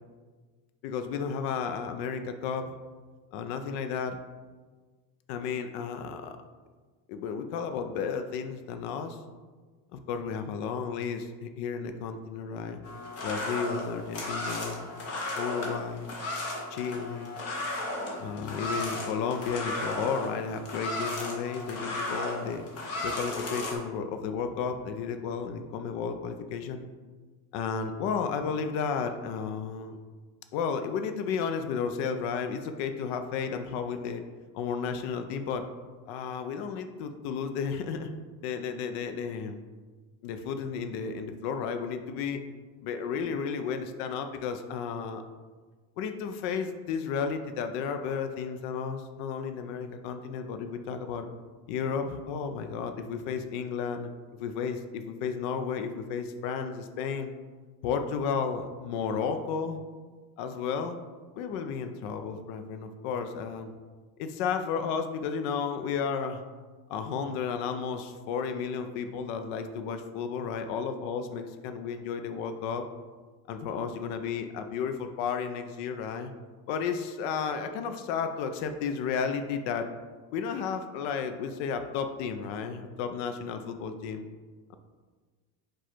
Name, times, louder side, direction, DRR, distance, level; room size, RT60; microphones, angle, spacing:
voice 1, 0.8-2.7 3.3-4.2 5.3-6.4 7.1-9.2 9.9-12.8 13.2-15.0 15.4-16.2 16.7-17.4 18.2-22.7 23.0-26.9 27.5-30.0 30.5-34.2 34.5-35.7 36.1-38.1 38.4-39.6 40.2-42.4 42.8-45.2 46.0-51.3 51.7-54.1 54.4-57.3 57.8-59.8 60.4-61.0 61.4-63.7 64.2-66.4 66.9-72.9 73.5-76.3 76.7-79.9 80.3-84.3, left 6 dB, 90° left, 7 dB, 0.5 m, -33 dB
sound 1, 12.8-23.8, left 1 dB, 35° left, 0.7 m, -35 dB
4.7 x 2.4 x 4.3 m, 1.4 s
cardioid pair, 165°, 43 cm